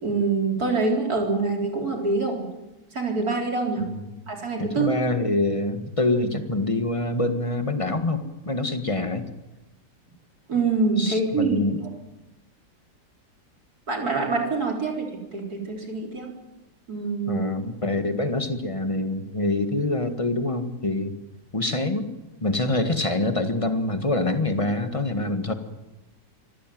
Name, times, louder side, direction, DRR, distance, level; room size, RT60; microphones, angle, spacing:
voice 1, 0.0-2.4 2.9-3.8 4.3-5.0 10.5-11.6 13.9-16.3 16.9-17.5, right 4 dB, 55° right, 1 dB, 4.5 m, -25 dB
voice 2, 4.6-9.2 11.0-11.8 17.3-21.1 21.5-22.1 22.4-25.5, left 2 dB, 20° left, 8 dB, 1.6 m, -25 dB
24.5 x 16.0 x 9.3 m, 1.0 s
omnidirectional pair, 1.9 m